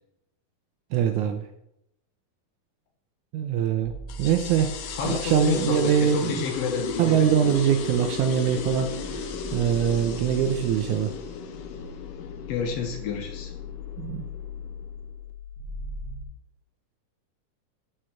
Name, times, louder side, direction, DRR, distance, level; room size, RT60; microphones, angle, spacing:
voice 1, 0.9-1.4 3.3-3.9 4.2-6.4 7.0-11.1 14.0-14.3, right 9 dB, 80° right, 6 dB, 1.9 m, -23 dB
sound 1, 3.8-16.2, left 2 dB, 15° right, 1.2 m, -41 dB
sound 2, 4.1-15.1, left 5 dB, 90° left, 2.3 m, -35 dB
voice 2, 5.0-7.5 12.5-13.5, left 6 dB, 65° left, 4 dB, 1.6 m, -30 dB
6.4 x 4.7 x 5.7 m, 0.80 s
omnidirectional pair, 3.8 m